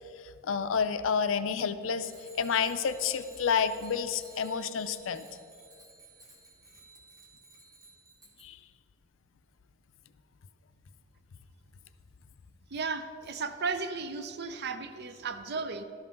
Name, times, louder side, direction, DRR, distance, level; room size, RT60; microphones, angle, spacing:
voice 1, 0.2-5.3 8.4-8.6, left 6 dB, 70° left, 12 dB, 0.4 m, -30 dB
Bicycle bell, 2.0-8.4, right 2 dB, 20° right, 1.4 m, -55 dB
voice 2, 12.7-15.8, right 4 dB, 55° right, 10 dB, 0.5 m, -35 dB
12.0 x 5.6 x 5.1 m, 2.4 s
head